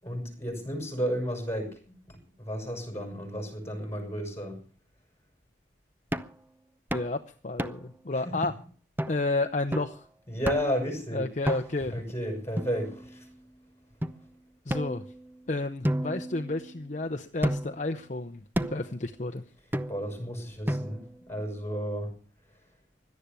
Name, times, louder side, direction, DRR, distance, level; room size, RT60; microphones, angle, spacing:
voice 1, 0.0-4.6 8.2-8.3 10.3-11.3 11.9-13.3 19.9-22.1, equal, 15° left, 3 dB, 6.3 m, -33 dB
sound 1, 6.1-6.4 6.9-7.1 7.6-8.0 8.4-8.5 9.0-9.2 9.7-10.0 10.5-10.8 11.5-11.9 12.6-13.3 14.0-14.1 14.7-15.4 15.8-16.9 17.4-17.9 18.6-18.9 19.7-20.2 20.7-21.2, equal, 10° right, 0.7 m, -32 dB
voice 2, 6.9-8.5 9.1-10.1 11.1-12.0 14.7-15.0 15.5-19.4, left 2 dB, 40° left, 7 dB, 0.8 m, -31 dB
17.5 x 12.0 x 6.8 m, 0.41 s
head